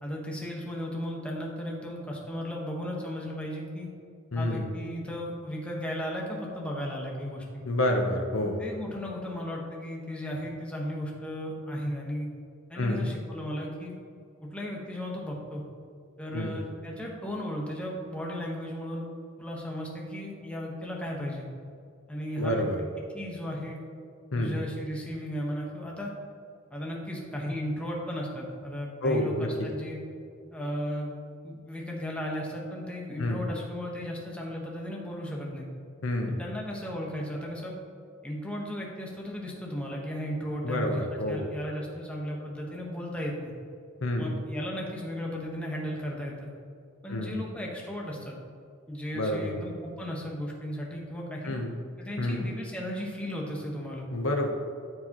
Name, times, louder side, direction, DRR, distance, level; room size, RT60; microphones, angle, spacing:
voice 1, 0.0-3.9 4.3-7.6 8.6-12.3 12.7-13.9 14.4-15.6 16.2-19.1 19.4-21.5 22.1-22.7 23.1-23.8 24.4-26.1 26.7-30.0 30.5-31.2 31.4-35.7 36.3-37.8 38.2-43.5 44.2-46.5 47.0-48.3 48.9-51.5 52.0-54.1, equal, 5° left, -2 dB, 1.2 m, -35 dB
voice 2, 4.3-4.7 7.6-8.6 12.7-13.1 16.3-16.6 22.4-22.8 24.3-24.6 29.0-29.7 33.2-33.4 36.0-36.4 40.6-41.4 44.0-44.3 47.1-47.4 49.1-49.6 51.4-51.8 52.2-52.5 54.1-54.5, left 1 dB, 90° left, 2 dB, 0.9 m, -28 dB
13.5 x 4.8 x 3.0 m, 2.4 s
head